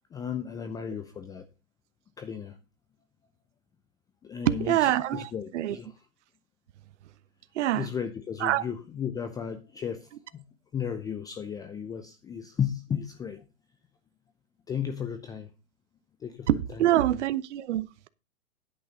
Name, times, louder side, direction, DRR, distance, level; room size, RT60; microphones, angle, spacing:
voice 1, 0.1-1.5 2.2-2.6 4.2-6.1 7.7-10.4 10.7-13.5 14.7-15.5 16.2-17.0, left 7 dB, 10° left, 0.6 m, -35 dB
voice 2, 4.5-5.8 7.6-7.9 8.4-8.6 16.5-18.1, right 13 dB, 55° right, 0.9 m, -25 dB
10.5 x 8.9 x 3.8 m
hypercardioid pair, 130°, 41 cm